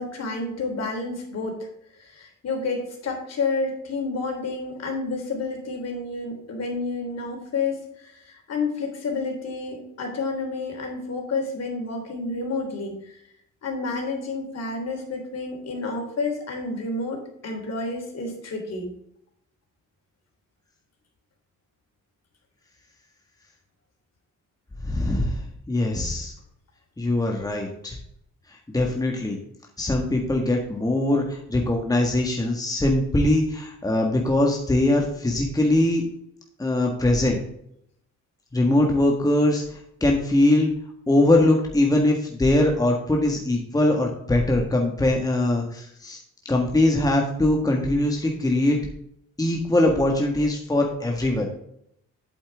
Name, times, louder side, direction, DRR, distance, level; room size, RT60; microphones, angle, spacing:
voice 1, 0.0-1.7 1.9-13.2 13.6-18.9, left 3 dB, 55° left, 1 dB, 3.5 m, -30 dB
voice 2, 24.8-25.4 25.7-26.3 27.0-28.0 28.7-29.4 29.8-36.1 36.6-37.4 38.5-40.7 41.1-46.2 46.5-48.8 49.4-51.5, left 1 dB, 10° left, 1 dB, 1.6 m, -22 dB
8.4 x 7.9 x 3.5 m, 0.73 s
cardioid pair, 90°, 30 cm